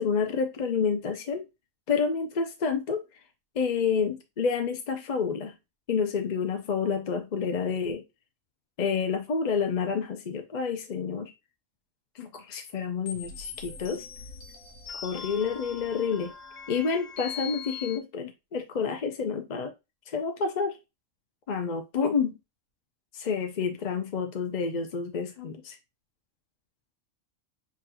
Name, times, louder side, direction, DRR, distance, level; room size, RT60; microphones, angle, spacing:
voice 1, 0.0-1.4 1.9-3.0 3.6-5.5 5.9-8.0 8.8-11.3 12.2-14.0 15.0-16.3 16.7-19.7 20.1-20.8 21.5-22.4 23.1-25.8, left 5 dB, 50° left, 0.5 m, -29 dB
sound 1, 13.1-18.0, left 7 dB, 70° left, 1.4 m, -41 dB
7.0 x 2.4 x 2.9 m
omnidirectional pair, 1.4 m